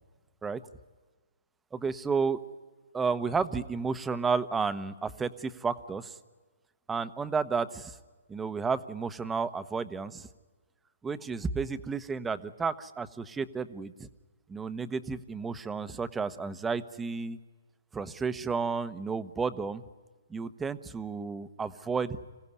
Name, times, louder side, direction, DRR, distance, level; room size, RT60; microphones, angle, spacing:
voice 1, 1.7-2.4 2.9-6.2 6.9-8.0 8.3-10.3 11.0-14.1 14.5-17.4 17.9-19.8 20.3-22.2, right 5 dB, 10° right, 13 dB, 1.0 m, -32 dB
26.5 x 16.5 x 9.7 m, 1.3 s
hypercardioid pair, 140°, 0 cm